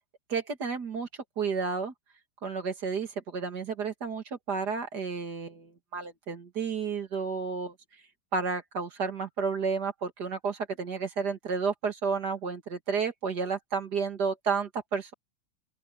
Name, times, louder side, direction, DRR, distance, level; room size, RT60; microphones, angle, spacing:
voice 1, 0.3-1.1 1.4-1.9 2.4-7.7 8.3-15.1, right 5 dB, 50° right, 2.5 m, -31 dB
open air
omnidirectional pair, 2.3 m